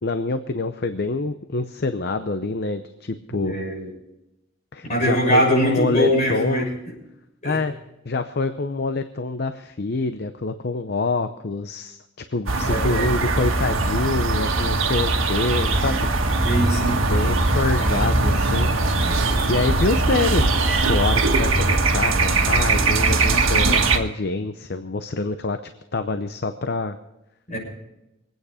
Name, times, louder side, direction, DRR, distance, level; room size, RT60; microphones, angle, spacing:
voice 1, 0.0-3.5 4.7-6.7 7.4-7.7 8.0-12.0 12.3-16.1 17.0-18.7 19.5-25.6 25.9-27.0, left 3 dB, 55° left, 9 dB, 0.7 m, -26 dB
voice 2, 3.3-3.9 4.9-6.6 7.4-7.6 12.6-13.1 16.4-17.0 27.5-27.6, equal, 35° left, -2 dB, 7.0 m, -22 dB
sound 1, 12.5-24.0, right 3 dB, 90° right, 1.6 m, -20 dB
23.5 x 9.2 x 5.0 m, 0.90 s
head